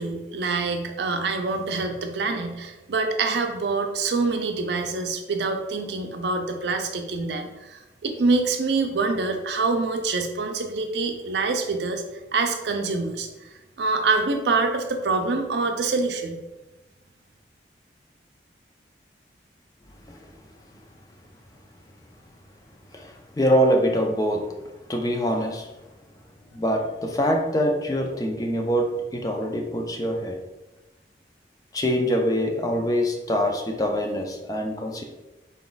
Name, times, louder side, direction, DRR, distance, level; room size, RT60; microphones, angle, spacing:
voice 1, 0.0-12.0 12.3-13.5 13.8-16.4, right 3 dB, 75° right, 5 dB, 0.5 m, -25 dB
voice 2, 22.9-24.5 24.9-25.7 26.5-30.4 31.7-35.0, equal, 20° left, 2 dB, 0.4 m, -24 dB
4.0 x 2.3 x 3.8 m, 1.1 s
head